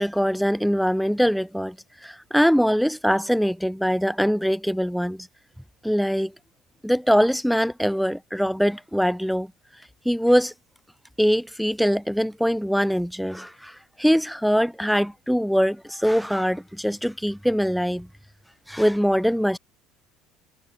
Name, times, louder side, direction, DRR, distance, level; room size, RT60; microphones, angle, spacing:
voice 1, 0.0-1.8 2.0-5.3 5.8-6.3 6.8-9.5 10.1-10.5 11.2-18.1 18.7-19.6, equal, ahead, 3.6 m, -22 dB
hypercardioid pair, 65°, 0 cm